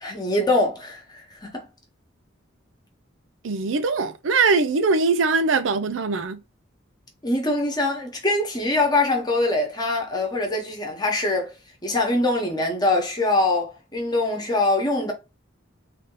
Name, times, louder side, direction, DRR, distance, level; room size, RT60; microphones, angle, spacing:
voice 1, 0.0-1.7 7.2-11.5 11.8-15.1, left 2 dB, 20° left, 1.1 m, -23 dB
voice 2, 3.4-6.4, right 4 dB, 85° right, 0.5 m, -21 dB
3.5 x 2.7 x 3.7 m
head